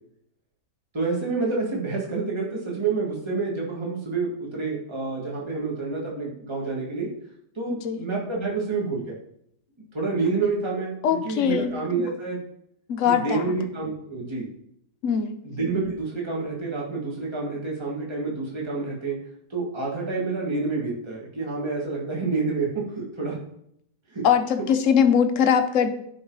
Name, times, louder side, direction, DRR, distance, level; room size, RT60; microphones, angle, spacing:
voice 1, 0.9-7.1 7.5-9.1 9.9-11.0 11.2-12.4 13.0-14.5 15.4-19.2 19.5-23.4 24.1-24.2, right 4 dB, 15° right, -3 dB, 1.8 m, -28 dB
voice 2, 7.7-8.0 11.0-11.7 12.9-13.5 15.0-15.4 24.2-25.9, left 7 dB, 55° left, 8 dB, 1.0 m, -21 dB
10.5 x 4.7 x 4.7 m, 0.73 s
omnidirectional pair, 1.8 m